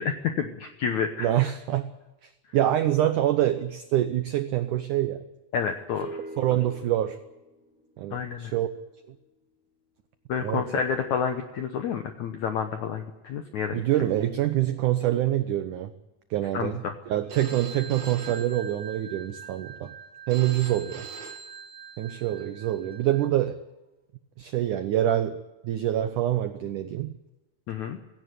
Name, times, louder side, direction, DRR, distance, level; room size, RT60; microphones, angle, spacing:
voice 1, 0.0-1.3 5.5-6.1 8.1-8.5 10.3-13.8 16.5-16.9 27.7-28.0, left 7 dB, 75° left, 6 dB, 1.7 m, -29 dB
voice 2, 1.2-1.9 2.2-5.2 6.4-7.2 8.0-8.7 10.4-10.6 13.7-15.9 16.3-19.9 20.3-21.1 22.0-23.6 24.4-25.4 25.6-27.2, right 12 dB, 85° right, 10 dB, 1.7 m, -26 dB
sound 1, 5.9-9.5 14.2-15.6 16.4-16.5 16.8-16.9 17.2-17.3 17.6-17.7 18.1-18.6 18.9-19.5 19.8-19.9 20.5-20.6 22.4-22.5 22.9-23.0 23.5-23.6, right 1 dB, 10° right, 0.5 m, -47 dB
Telephone, 17.3-23.3, right 6 dB, 65° right, 4.2 m, -42 dB
17.0 x 16.5 x 9.3 m, 1.0 s
omnidirectional pair, 4.8 m